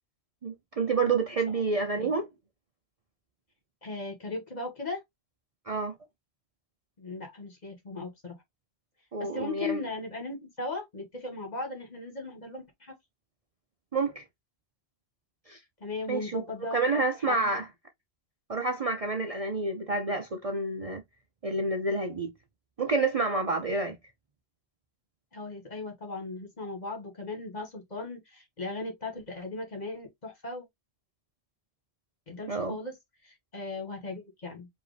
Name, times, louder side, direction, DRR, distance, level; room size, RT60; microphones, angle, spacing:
voice 1, 0.4-2.3 5.7-5.9 9.1-9.8 13.9-14.2 15.5-15.6 16.1-17.6 18.5-21.0 21.4-22.3 22.8-24.0 32.5-32.8, right 3 dB, 40° right, 0.6 m, -29 dB
voice 2, 3.8-5.0 7.0-8.4 9.2-13.0 15.8-17.5 25.3-30.7 32.3-33.0 33.2-34.7, left 3 dB, 40° left, 1.8 m, -37 dB
4.9 x 2.8 x 3.3 m
omnidirectional pair, 1.1 m